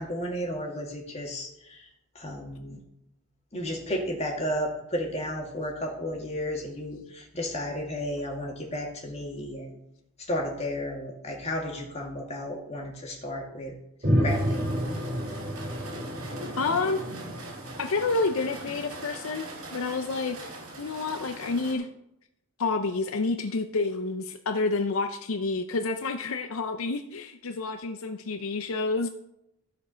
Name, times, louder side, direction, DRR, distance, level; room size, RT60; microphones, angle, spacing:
voice 1, 0.0-1.9 2.1-2.8 3.5-9.8 10.3-13.7 14.2-14.7, equal, 30° left, 0 dB, 2.2 m, -33 dB
sound 1, 14.0-18.7, equal, 35° right, 3.4 m, -30 dB
sound 2, 14.3-21.7, right 1 dB, 75° right, 4.0 m, -41 dB
voice 2, 16.6-17.0 17.8-21.9 22.6-29.1, left 3 dB, 70° left, 8 dB, 0.6 m, -29 dB
14.5 x 5.2 x 5.6 m, 0.82 s
head